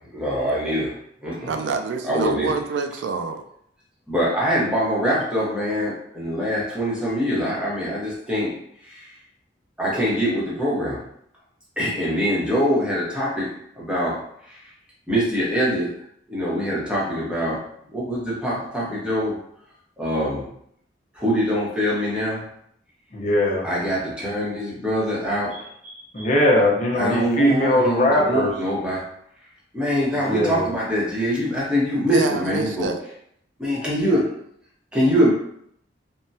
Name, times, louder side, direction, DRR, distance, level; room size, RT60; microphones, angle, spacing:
voice 1, 0.1-1.5 2.0-2.5 4.1-9.2 9.8-11.0 11.8-14.7 15.1-16.0 16.3-19.4 20.0-20.5 21.1-22.5 23.6-26.3 26.9-29.1 29.7-32.9 33.6-34.4 34.9-35.3, equal, 5° right, -7 dB, 0.9 m, -24 dB
voice 2, 1.5-3.4 32.1-33.0, right 5 dB, 80° right, 6 dB, 0.3 m, -26 dB
voice 3, 23.1-23.6 26.1-28.5 30.2-30.7, left 1 dB, 40° left, -3 dB, 0.7 m, -20 dB
3.4 x 2.1 x 2.7 m, 0.69 s
head